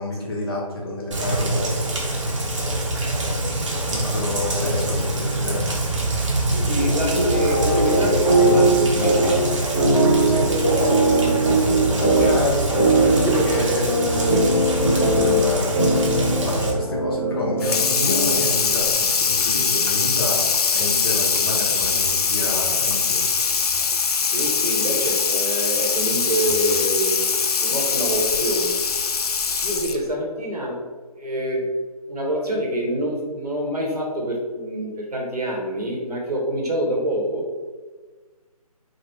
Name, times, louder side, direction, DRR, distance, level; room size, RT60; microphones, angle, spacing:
voice 1, 0.0-1.6 3.9-5.7 10.3-10.5 10.8-10.9 12.2-12.7 13.0-15.7 16.3-20.4 20.7-23.2, left 1 dB, 40° left, -4 dB, 0.8 m, -28 dB
Rain, 1.1-16.7, right 1 dB, 55° right, 0.7 m, -25 dB
voice 2, 6.5-9.4 11.9-12.8 24.3-27.2 27.6-28.8 29.6-30.8 31.2-31.7 32.1-37.4, equal, 80° right, -1 dB, 1.0 m, -26 dB
sound 1, 6.8-18.5, right 2 dB, 10° right, 1.0 m, -20 dB
Water tap faucet / Sink (filling or washing), 17.6-30.1, left 5 dB, 80° left, 0.4 m, -22 dB
3.2 x 2.1 x 3.1 m, 1.4 s
figure-of-eight pair, 155°, 19 cm